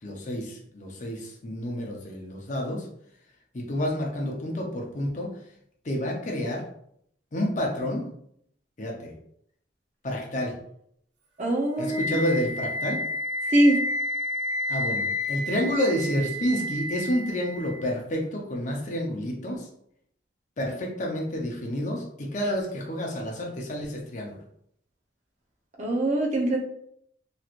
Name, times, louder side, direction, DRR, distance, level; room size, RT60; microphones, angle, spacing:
voice 1, 0.0-2.9 3.5-5.3 5.8-6.6 7.3-8.0 8.8-9.1 10.0-10.6 11.8-13.0 14.7-19.7 20.6-24.4, equal, 40° left, 0 dB, 0.7 m, -29 dB
voice 2, 11.4-12.2 13.5-13.8 25.8-26.6, right 1 dB, 40° right, -2 dB, 0.7 m, -22 dB
Wind instrument woodwind instrument, 11.9-17.9, left 1 dB, 70° right, 0.7 m, -30 dB
3.0 x 3.0 x 2.5 m, 0.70 s
head